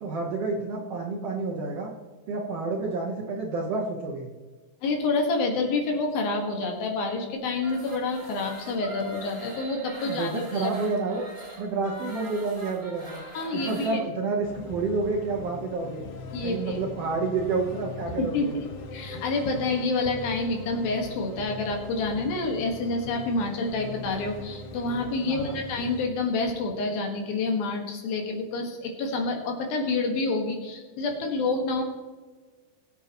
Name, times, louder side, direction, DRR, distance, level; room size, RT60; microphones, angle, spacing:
voice 1, 0.0-1.9 2.3-4.3 10.0-11.3 11.6-13.2 13.5-16.0 16.4-18.6 25.2-25.6, right 3 dB, 65° right, -1 dB, 1.6 m, -29 dB
voice 2, 4.8-10.7 13.4-14.0 16.3-16.8 18.2-31.8, left 3 dB, 90° left, 2 dB, 3.5 m, -28 dB
sound 1, 7.5-14.0, right 1 dB, 10° right, 3.5 m, -43 dB
sound 2, 14.4-26.1, left 3 dB, 65° left, 2.3 m, -41 dB
20.5 x 8.2 x 3.0 m, 1.3 s
omnidirectional pair, 4.1 m